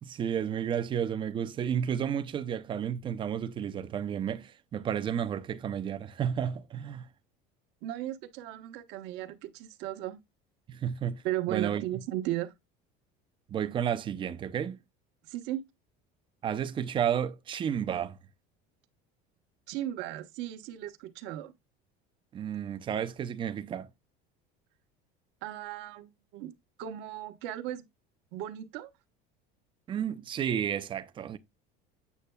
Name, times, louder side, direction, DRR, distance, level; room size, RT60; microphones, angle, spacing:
voice 1, 0.0-7.0 10.7-11.2 11.5-11.8 13.5-14.8 16.4-18.2 22.3-23.9 29.9-31.4, right 9 dB, 25° right, 0.5 m, -32 dB
voice 2, 7.8-10.2 11.2-12.5 15.3-15.6 19.7-21.5 25.4-26.5 26.8-27.9 28.3-28.9, right 13 dB, 65° right, 1.1 m, -36 dB
8.3 x 6.5 x 2.2 m
cardioid pair, 155°, 19 cm